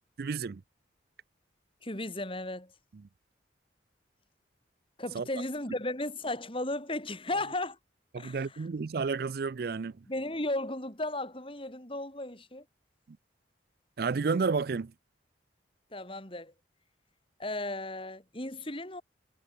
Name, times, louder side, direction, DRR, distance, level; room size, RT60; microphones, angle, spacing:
voice 1, 0.2-0.6 5.1-5.2 8.1-9.9 14.0-14.9, right 4 dB, 55° right, 0.4 m, -31 dB
voice 2, 1.8-2.7 5.0-7.8 8.2-8.7 10.1-12.6 15.9-16.5 17.4-19.0, left 2 dB, 30° left, 5.0 m, -35 dB
head